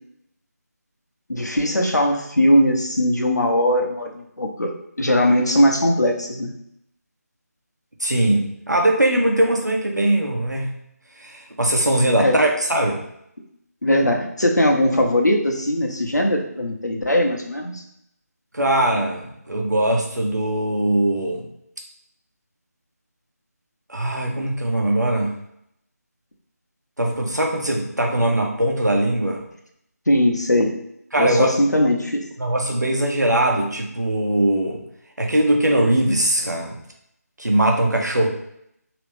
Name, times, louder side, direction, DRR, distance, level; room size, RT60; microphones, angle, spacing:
voice 1, 1.3-6.5 12.2-12.4 13.8-17.8 30.1-30.8 31.2-32.2, left 1 dB, 80° left, 1 dB, 0.9 m, -20 dB
voice 2, 8.0-10.7 11.2-13.0 18.5-21.4 23.9-25.3 27.0-29.4 31.1-31.5 32.4-34.8 35.2-36.7 37.4-38.3, right 1 dB, 80° right, 1 dB, 0.9 m, -20 dB
3.2 x 3.0 x 3.3 m, 0.75 s
figure-of-eight pair, 160°, 9 cm